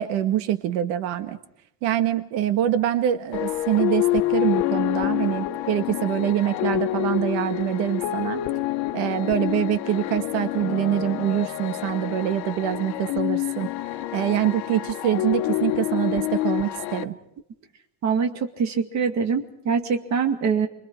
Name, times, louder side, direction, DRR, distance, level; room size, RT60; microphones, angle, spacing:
voice 1, 0.0-1.4 1.8-8.4 8.9-13.7 14.1-17.2, right 11 dB, 85° right, 9 dB, 1.8 m, -25 dB
sound 1, 3.3-17.0, left 16 dB, 85° left, 1.2 m, -27 dB
voice 2, 18.0-20.7, right 6 dB, 40° right, 6 dB, 2.2 m, -24 dB
30.0 x 24.0 x 4.8 m, 0.74 s
cardioid pair, 165°, 44 cm